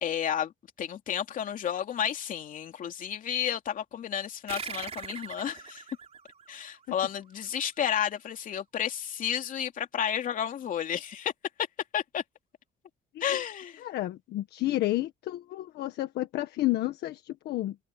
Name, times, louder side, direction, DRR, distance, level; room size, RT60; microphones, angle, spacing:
voice 1, 0.0-0.5 0.8-5.8 6.5-11.3 11.9-12.2 13.2-13.8, left 9 dB, 55° left, 3.0 m, -31 dB
sound 1, 4.5-7.5, right 6 dB, 35° right, 4.2 m, -42 dB
voice 2, 13.8-17.8, left 16 dB, 75° left, 1.6 m, -31 dB
cardioid pair, 110°, 17 cm